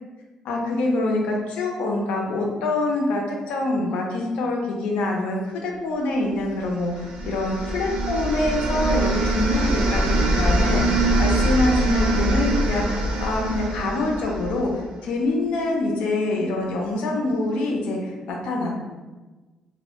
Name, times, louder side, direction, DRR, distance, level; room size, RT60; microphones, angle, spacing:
voice 1, 0.4-18.8, left 2 dB, 90° left, 0 dB, 0.4 m, -25 dB
sound 1, 6.8-14.8, right 1 dB, 65° right, 0.4 m, -23 dB
2.1 x 2.0 x 2.9 m, 1.2 s
cardioid pair, 150°, 2 cm